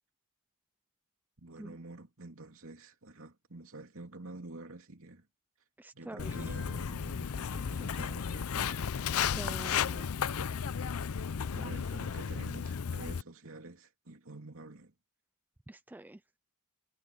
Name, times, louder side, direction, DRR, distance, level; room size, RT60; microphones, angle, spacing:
voice 1, 1.4-5.3 5.9-8.7 11.4-14.9, right 2 dB, 65° right, 3.0 m, -48 dB
voice 2, 5.8-6.5 9.1-10.1 11.5-11.8 15.7-16.2, right 1 dB, 10° right, 0.3 m, -46 dB
Walk footsteps, 6.2-13.2, left 7 dB, 75° left, 0.6 m, -34 dB
head